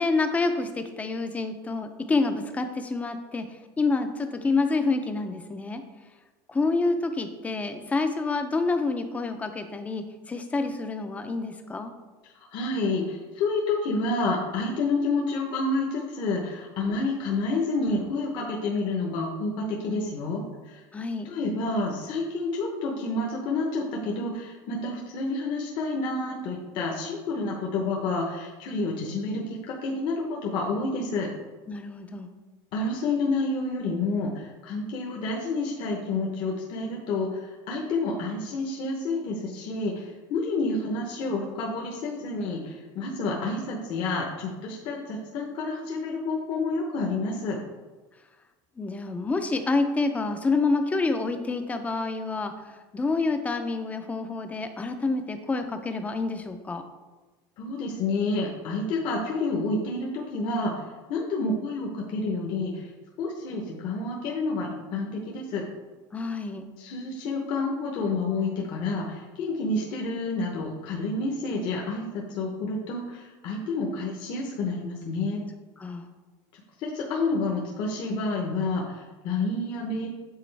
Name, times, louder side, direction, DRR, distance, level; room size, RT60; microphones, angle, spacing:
voice 1, 0.0-3.5 3.8-5.8 6.5-11.9 20.9-21.3 31.7-32.3 48.8-52.5 52.9-56.8 66.1-66.6 75.8-76.1, left 3 dB, 15° left, 7 dB, 0.5 m, -28 dB
voice 2, 12.5-20.8 21.2-31.3 32.7-47.6 57.6-60.8 61.1-62.9 63.2-65.6 66.8-75.4 76.8-80.1, left 3 dB, 50° left, -1 dB, 0.9 m, -29 dB
7.6 x 3.8 x 3.3 m, 1.2 s
cardioid pair, 140°, 10 cm